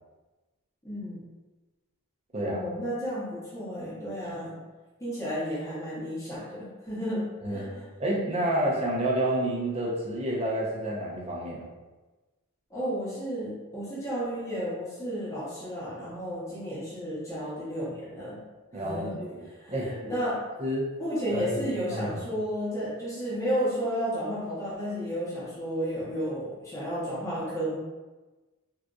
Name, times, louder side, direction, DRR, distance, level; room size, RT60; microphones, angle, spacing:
voice 1, 0.8-1.2 2.4-4.6 5.0-7.8 12.7-18.4 18.7-19.2 19.5-20.4 21.0-27.8, equal, 15° left, -9 dB, 0.9 m, -32 dB
voice 2, 8.0-11.7 18.7-19.9 20.6-20.9 21.3-22.2, right 1 dB, 30° right, -4 dB, 0.7 m, -29 dB
3.7 x 2.5 x 2.3 m, 1.2 s
head